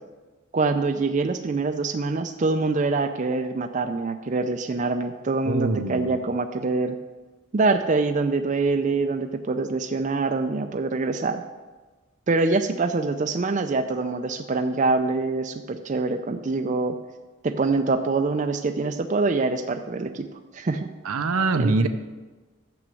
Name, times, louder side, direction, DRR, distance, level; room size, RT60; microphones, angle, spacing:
voice 1, 0.5-7.0 7.5-11.4 12.3-17.0 17.4-20.3 20.5-20.9 21.6-21.8, right 3 dB, 35° right, 7 dB, 0.4 m, -25 dB
voice 2, 5.5-6.2 21.0-21.9, right 3 dB, 85° right, 8 dB, 0.7 m, -23 dB
7.1 x 6.2 x 7.7 m, 1.3 s
head